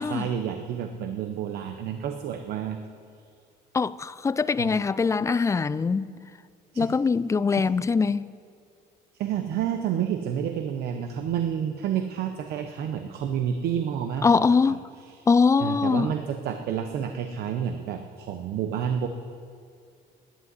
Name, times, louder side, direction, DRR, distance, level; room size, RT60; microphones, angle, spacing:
voice 1, 0.0-2.8 4.6-4.7 6.7-6.9 7.5-7.7 9.2-15.3 15.6-19.1, right 8 dB, 70° right, 0.9 m, -30 dB
voice 2, 3.7-6.1 6.8-8.3 14.2-14.8 15.3-16.1, left 5 dB, 20° left, 0.4 m, -22 dB
11.0 x 10.5 x 9.6 m
cardioid pair, 110°, 17 cm